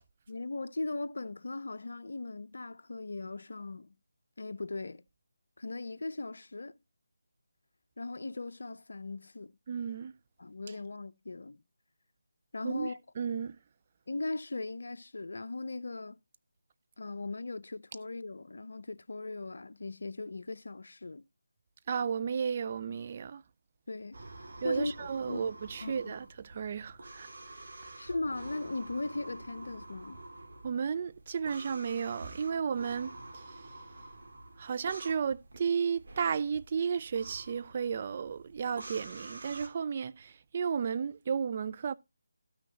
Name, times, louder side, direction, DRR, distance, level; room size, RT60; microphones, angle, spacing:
voice 1, 0.3-3.9 4.4-5.0 5.6-6.7 8.0-9.5 10.4-11.6 12.5-13.0 14.1-16.2 17.0-21.2 23.9-25.4 25.8-26.2 28.0-30.2, left 2 dB, 65° left, 0.6 m, -38 dB
voice 2, 9.7-10.1 12.6-12.9 13.2-13.5 21.9-23.4 24.6-27.3 30.6-33.4 34.6-41.9, right 6 dB, 35° right, 0.5 m, -33 dB
sound 1, 24.1-39.7, right 2 dB, 55° right, 2.4 m, -48 dB
12.5 x 6.1 x 2.9 m
figure-of-eight pair, 155°, 0 cm